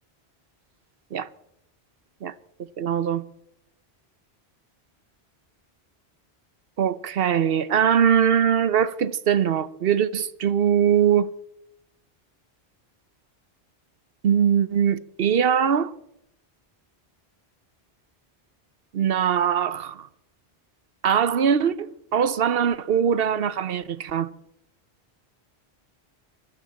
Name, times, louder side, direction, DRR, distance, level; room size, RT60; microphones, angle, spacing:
voice 1, 2.8-3.3 6.8-11.3 14.2-15.9 18.9-20.1 21.0-24.3, right 8 dB, 65° right, 0.9 m, -22 dB
14.5 x 12.5 x 7.5 m
omnidirectional pair, 1.1 m